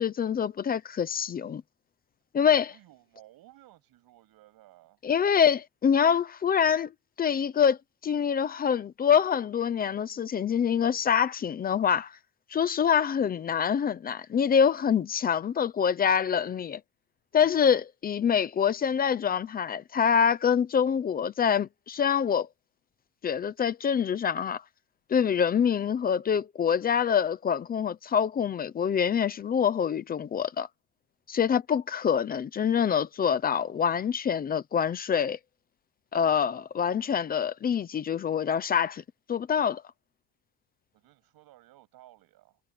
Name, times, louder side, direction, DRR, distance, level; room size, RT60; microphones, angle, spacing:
voice 1, 0.0-1.6 2.3-2.7 5.0-6.9 7.2-7.8 8.0-12.1 12.5-16.8 17.3-22.5 23.2-24.6 25.1-30.7 31.3-35.4 36.1-39.0 39.3-39.8, left 7 dB, 20° left, 0.7 m, -25 dB
voice 2, 2.7-5.0 40.9-42.6, right 15 dB, 45° right, 7.9 m, -56 dB
cardioid pair, 175°, 50 cm